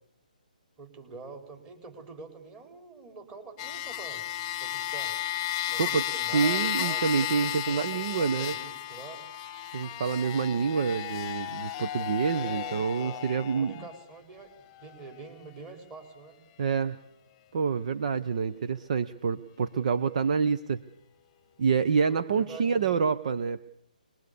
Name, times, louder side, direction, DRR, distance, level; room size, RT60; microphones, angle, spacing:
voice 1, 0.8-4.2 4.6-5.2 5.7-7.0 7.4-9.2 12.3-16.4 22.1-23.0, right 4 dB, 20° right, 4 dB, 4.6 m, -46 dB
sound 1, 3.6-14.0 14.8-14.9, left 12 dB, 25° left, 1.1 m, -33 dB
voice 2, 5.8-8.6 9.7-13.7 16.6-17.0 17.5-20.8 21.6-23.7, right 6 dB, 50° right, 12 dB, 0.9 m, -27 dB
24.5 x 21.5 x 6.9 m, 0.67 s
figure-of-eight pair, 145°, 5 cm